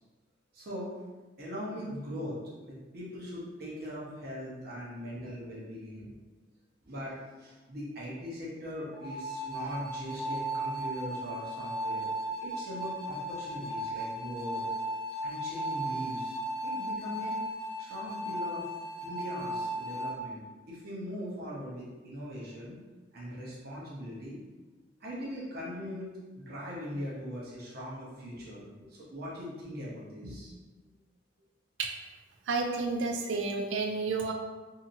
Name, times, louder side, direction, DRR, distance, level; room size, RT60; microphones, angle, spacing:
voice 1, 0.5-1.0 1.4-2.4 2.6-6.1 6.8-12.1 12.4-14.6 15.2-16.3 16.6-17.3 17.8-18.6 19.0-20.4 20.7-22.8 23.1-24.4 25.0-26.1 26.4-30.5, equal, 50° right, -6 dB, 0.9 m, -40 dB
sound 1, 8.9-20.2, right 1 dB, 25° left, 0.7 m, -36 dB
voice 2, 32.5-34.3, right 4 dB, 75° right, 3 dB, 0.4 m, -30 dB
2.8 x 2.7 x 2.5 m, 1.2 s
head